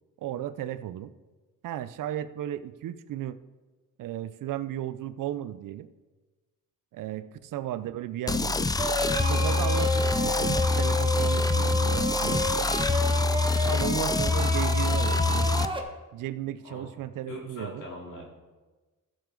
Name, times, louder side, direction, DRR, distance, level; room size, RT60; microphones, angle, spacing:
voice 1, 0.2-1.1 1.6-3.4 4.0-5.9 6.9-8.7 9.2-12.7 13.6-15.7 16.1-17.9, right 12 dB, 85° right, 14 dB, 0.6 m, -35 dB
sound 1, 8.3-15.7, left 3 dB, 15° left, 0.4 m, -25 dB
sound 2, 8.8-15.8, right 1 dB, 15° right, 1.3 m, -31 dB
voice 2, 17.3-18.3, equal, 70° left, -2 dB, 3.1 m, -41 dB
15.0 x 7.4 x 3.8 m, 1.2 s
cardioid pair, 95°, 31 cm